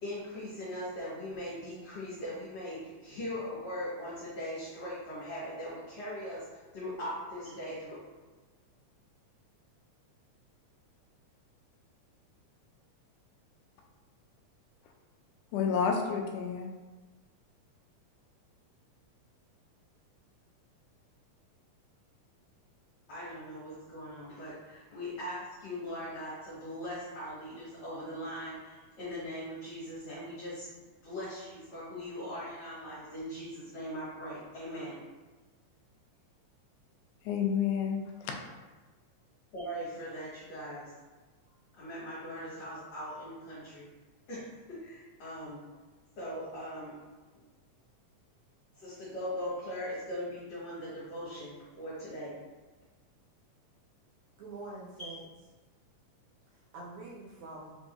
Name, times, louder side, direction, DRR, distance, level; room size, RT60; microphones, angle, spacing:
voice 1, 0.0-6.4 6.7-8.0 23.1-30.7 31.0-34.9 39.5-40.9 41.8-43.9 44.3-45.6 46.2-47.0 48.7-52.4 55.0-55.1, equal, 55° left, 2.5 m, -40 dB
voice 2, 15.5-16.7 37.2-38.4, left 6 dB, 85° left, 2.0 m, -30 dB
voice 3, 54.4-55.3 56.5-57.8, right 2 dB, 70° right, 2.2 m, -45 dB
5.2 x 3.7 x 2.5 m
omnidirectional pair, 3.6 m